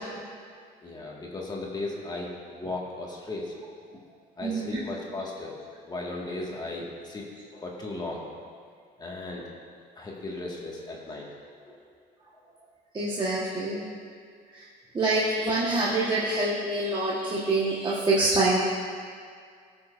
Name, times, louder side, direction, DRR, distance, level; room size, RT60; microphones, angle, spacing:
voice 1, 0.8-3.5 4.4-5.6 5.8-7.2 7.5-8.2 9.0-9.4 9.9-11.3 11.6-11.8 12.3-12.4, left 2 dB, 25° left, -3 dB, 1.6 m, -36 dB
voice 2, 4.4-4.8 12.9-13.9 14.5-14.7 14.9-18.6, right 2 dB, 25° right, -7 dB, 1.3 m, -26 dB
18.0 x 6.1 x 2.5 m, 2.1 s
cardioid pair, 110°, 17 cm